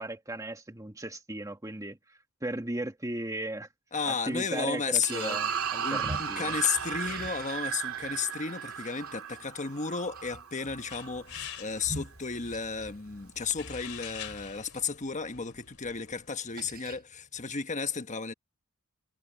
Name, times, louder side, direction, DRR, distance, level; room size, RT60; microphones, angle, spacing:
voice 1, 0.0-3.7 4.1-6.6, right 1 dB, 15° right, 1.5 m, -36 dB
voice 2, 3.9-5.4 5.8-18.3, left 5 dB, 35° left, 1.2 m, -33 dB
sound 1, 5.0-11.6, right 7 dB, 85° right, 2.8 m, -35 dB
sound 2, 5.1-15.0 15.3-15.6 15.9-17.4, right 1 dB, 45° right, 7.0 m, -47 dB
sound 3, 10.9-16.3, left 10 dB, 75° left, 3.2 m, -47 dB
head